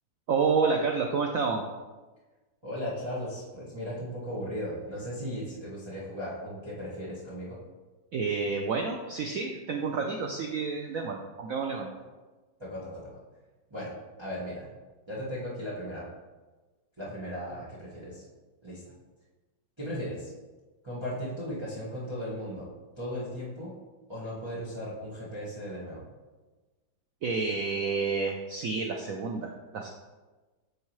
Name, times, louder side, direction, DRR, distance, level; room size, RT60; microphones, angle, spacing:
voice 1, 0.3-1.6 8.1-11.9 27.2-29.9, right 4 dB, 80° right, 2 dB, 0.7 m, -29 dB
voice 2, 2.6-7.6 12.6-13.2 13.7-13.9 14.2-14.7 15.1-16.1 17.0-18.2 18.6-18.8 19.8-20.3 20.8-22.7 23.0-23.7 24.1-26.0, equal, 15° right, -9 dB, 1.6 m, -36 dB
8.1 x 5.0 x 3.1 m, 1.3 s
omnidirectional pair, 2.0 m